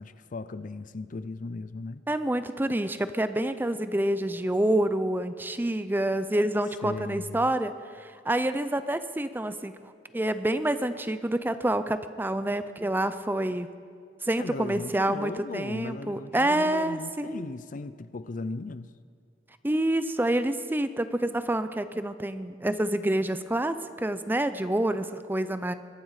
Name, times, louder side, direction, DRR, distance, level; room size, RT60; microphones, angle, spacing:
voice 1, 0.0-2.0 6.8-7.5 14.4-18.9, left 3 dB, 45° left, 14 dB, 0.5 m, -37 dB
voice 2, 2.1-7.7 8.0-9.8 10.1-13.7 14.2-17.4 19.6-25.7, right 1 dB, 10° right, 12 dB, 0.5 m, -27 dB
23.0 x 11.5 x 4.9 m, 2.3 s
head